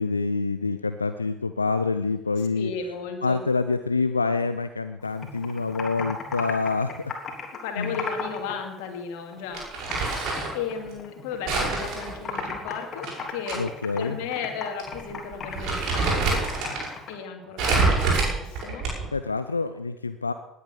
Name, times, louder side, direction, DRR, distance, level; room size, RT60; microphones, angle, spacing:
voice 1, 0.0-2.7 3.2-7.1 7.8-8.0 13.6-14.2 19.1-20.3, left 4 dB, 85° left, 10 dB, 0.5 m, -26 dB
voice 2, 2.6-3.4 7.6-9.7 10.5-13.6 14.0-16.5 17.1-18.9, left 6 dB, 60° left, 4 dB, 2.5 m, -35 dB
Computer keyboard, 5.0-8.5 8.8-10.1 10.4-11.7 11.9-17.1, left 5 dB, 35° left, 3.4 m, -36 dB
Crumpling crinkling, 9.5-10.6 11.5-13.6 13.9-14.0 14.8-15.0 15.3-16.9 17.6-19.2, right 3 dB, 55° right, 6.6 m, -26 dB
19.5 x 9.4 x 6.7 m, 0.96 s
figure-of-eight pair, 60°, 0 cm